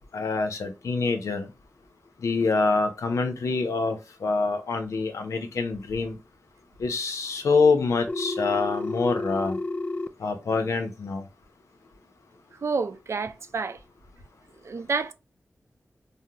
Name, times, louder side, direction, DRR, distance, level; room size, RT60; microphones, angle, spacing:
voice 1, 0.1-1.5 2.2-6.2 6.8-9.6 10.2-11.2, left 4 dB, 90° left, 0.6 m, -25 dB
Telephone, 8.1-10.1, left 2 dB, 30° left, 0.4 m, -30 dB
voice 2, 12.6-13.8 14.6-15.1, right 4 dB, 65° right, 0.4 m, -29 dB
3.6 x 2.0 x 2.7 m
cardioid pair, 40°, 5 cm